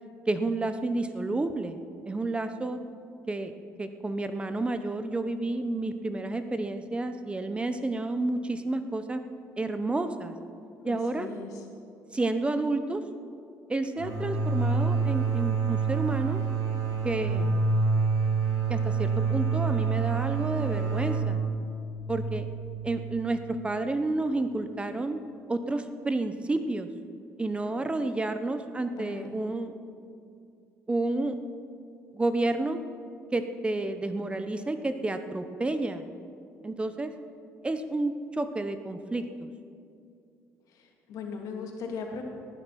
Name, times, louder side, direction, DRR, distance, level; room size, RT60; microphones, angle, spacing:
voice 1, 0.3-1.8 2.1-2.8 3.3-3.5 3.8-9.2 9.6-10.3 10.8-11.3 12.1-13.0 13.7-16.4 17.0-17.6 18.7-21.4 22.1-22.5 22.8-25.2 25.5-26.9 27.4-29.7 30.9-31.4 32.1-32.8 33.3-36.0 36.6-37.1 37.6-39.5, right 2 dB, 20° right, 9 dB, 0.8 m, -30 dB
voice 2, 10.8-11.5 29.0-29.5 41.1-42.2, left 5 dB, 80° left, 1 dB, 2.4 m, -38 dB
sound 1, 14.0-23.5, right 4 dB, 75° right, 2.1 m, -27 dB
18.5 x 10.0 x 5.9 m, 2.5 s
cardioid pair, 105°, 6 cm